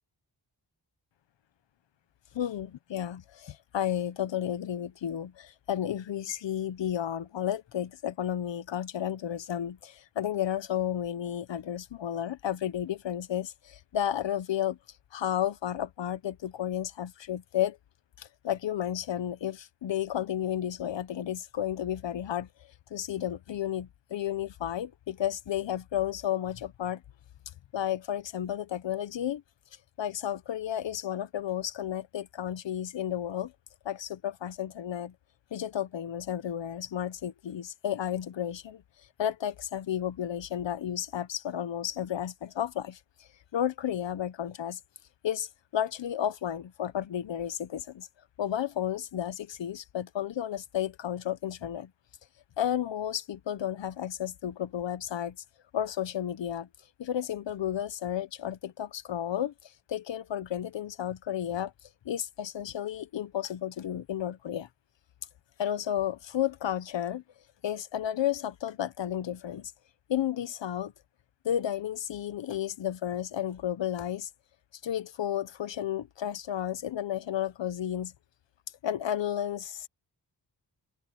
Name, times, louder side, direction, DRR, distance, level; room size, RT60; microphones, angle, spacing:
voice 1, 2.3-14.8 15.1-17.8 18.2-22.5 22.9-27.0 27.7-29.4 30.0-33.5 33.8-35.1 35.5-38.8 39.2-43.0 43.5-44.8 45.2-48.1 48.4-51.9 52.6-55.4 55.7-56.7 57.0-61.7 62.0-64.7 65.6-67.2 67.6-69.7 70.1-70.9 71.4-74.3 74.8-78.1 78.8-79.9, left 10 dB, 90° left, 1.0 m, -32 dB
open air
wide cardioid pair, 175°, 43 cm